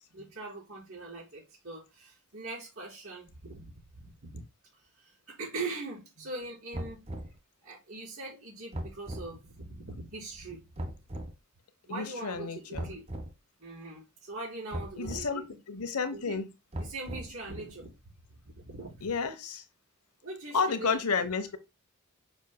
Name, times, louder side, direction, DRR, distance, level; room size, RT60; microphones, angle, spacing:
voice 1, 0.1-4.4 4.7-7.1 7.6-10.9 11.8-13.0 13.6-15.6 16.1-16.4 16.8-19.1 20.2-21.0, right 3 dB, 75° right, 4.0 m, -42 dB
sound 1, 6.7-7.4 8.7-9.3 10.8-11.3 12.7-13.3 14.7-15.3 16.7-17.5, right 1 dB, 30° right, 1.0 m, -38 dB
voice 2, 11.9-12.9 15.0-16.5 19.0-19.6 20.5-21.6, left 5 dB, 90° left, 1.0 m, -31 dB
6.7 x 6.3 x 2.2 m
head